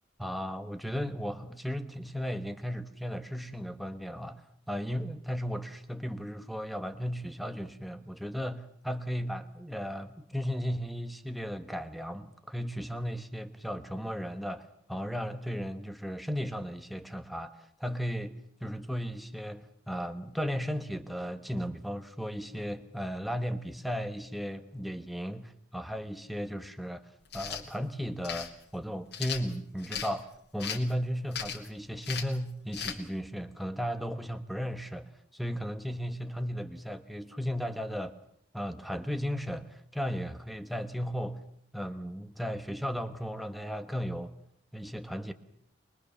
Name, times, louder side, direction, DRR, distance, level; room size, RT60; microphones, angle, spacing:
voice 1, 0.2-18.4 18.6-38.1 38.5-41.4 41.7-44.3 44.7-45.3, equal, ahead, 8 dB, 1.1 m, -35 dB
sound 1, 27.3-27.6 28.2-28.5 29.1-30.1 30.6-30.9 31.3-31.7 32.0-32.4 32.7-33.0, left 8 dB, 55° left, 2.6 m, -37 dB
23.5 x 23.0 x 7.0 m, 0.66 s
head